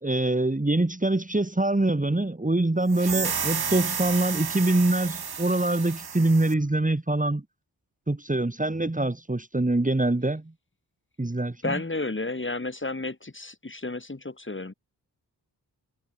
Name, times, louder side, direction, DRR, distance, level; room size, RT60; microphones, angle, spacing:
voice 1, 0.0-7.4 8.1-10.4 11.2-11.8, right 2 dB, 20° right, 2.9 m, -24 dB
sound 1, 2.9-6.6, right 6 dB, 65° right, 2.9 m, -31 dB
voice 2, 11.6-14.7, left 2 dB, 30° left, 4.9 m, -32 dB
cardioid pair, 50°, 41 cm